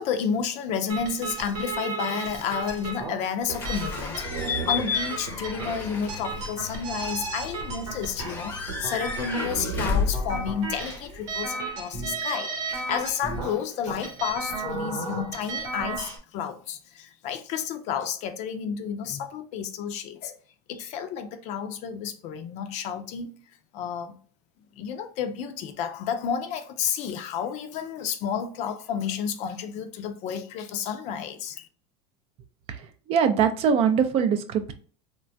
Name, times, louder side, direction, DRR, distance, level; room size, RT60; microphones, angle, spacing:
voice 1, 0.0-20.3 20.7-23.3 23.7-24.2 24.8-31.7, left 7 dB, 50° left, 0.5 m, -31 dB
sound 1, 0.9-16.2, right 4 dB, 80° right, 0.9 m, -34 dB
Slam / Squeak / Alarm, 3.5-11.5, left 5 dB, 15° left, 0.7 m, -32 dB
voice 2, 32.7-34.7, right 7 dB, 40° right, 0.4 m, -23 dB
3.2 x 2.2 x 2.5 m
supercardioid pair, 110°, 15 cm